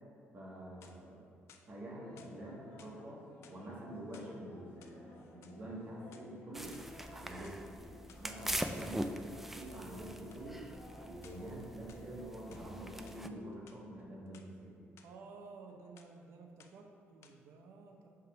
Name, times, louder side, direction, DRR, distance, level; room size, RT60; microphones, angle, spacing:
voice 1, 0.3-1.3 1.7-3.2 3.5-6.8 7.1-7.8 8.2-10.7 11.0-14.8, right 1 dB, 40° right, -4 dB, 1.6 m, -47 dB
sound 1, 0.6-1.2 1.5-2.3 2.8-3.0 3.4-4.3 4.7-5.6 6.0-6.8 7.4-7.6 8.1-8.3 10.3-10.5 11.2-11.5 11.9-12.7 13.1-13.2 13.5-14.5 15.0-15.1 15.5-15.7 16.0-16.2 16.6-16.9 17.2-17.3, left 7 dB, 75° left, 0.5 m, -62 dB
sound 2, 1.8-13.1, left 2 dB, 60° left, 1.4 m, -56 dB
sound 3, 6.5-13.3, right 1 dB, 5° right, 0.3 m, -43 dB
voice 2, 15.0-18.1, right 4 dB, 80° right, 3 dB, 0.7 m, -53 dB
5.8 x 3.7 x 5.9 m, 2.2 s
cardioid pair, 140°, 5 cm